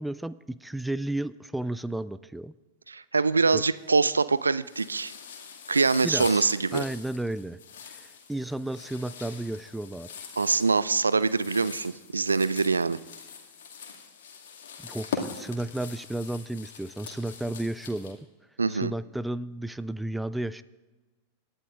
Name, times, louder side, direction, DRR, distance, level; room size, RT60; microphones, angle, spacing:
voice 1, 0.0-2.5 3.5-3.6 6.0-6.5 6.7-7.6 7.8-10.1 14.8-18.2 18.7-20.6, right 1 dB, 5° right, 16 dB, 0.4 m, -33 dB
voice 2, 2.9-5.1 5.7-6.8 10.4-13.0 18.6-18.9, right 4 dB, 75° right, 16 dB, 0.4 m, -24 dB
sound 1, 3.8-4.3 4.6-18.1, left 6 dB, 60° left, 2.2 m, -42 dB
27.0 x 11.5 x 2.5 m, 1.2 s
figure-of-eight pair, 90°, 0 cm